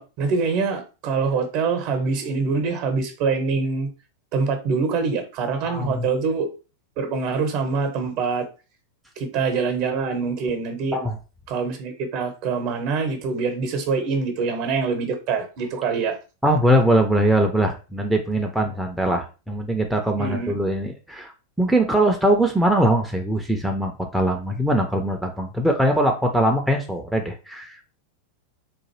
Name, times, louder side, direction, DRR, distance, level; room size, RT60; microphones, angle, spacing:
voice 1, 0.0-3.9 4.3-6.5 7.0-8.5 9.2-11.0 11.5-16.2 20.2-20.5, right 4 dB, 45° right, 0.8 m, -24 dB
voice 2, 5.6-6.1 10.9-11.2 16.4-21.3 21.6-27.8, right 1 dB, ahead, 0.5 m, -21 dB
3.8 x 2.5 x 2.9 m
figure-of-eight pair, 90°, 0 cm